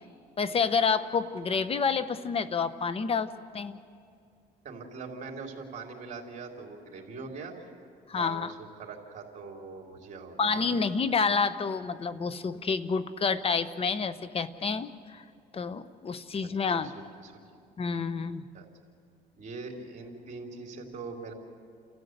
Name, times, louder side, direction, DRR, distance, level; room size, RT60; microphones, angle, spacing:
voice 1, 0.4-3.8 8.1-8.5 10.4-15.2 15.5-16.9 17.8-18.5, left 5 dB, 35° left, 13 dB, 0.9 m, -29 dB
voice 2, 4.6-7.9 8.1-10.7 16.8-17.4 18.5-18.7 19.3-21.3, right 4 dB, 45° right, 1 dB, 3.7 m, -42 dB
30.0 x 14.0 x 8.0 m, 2.3 s
cardioid pair, 110°, 17 cm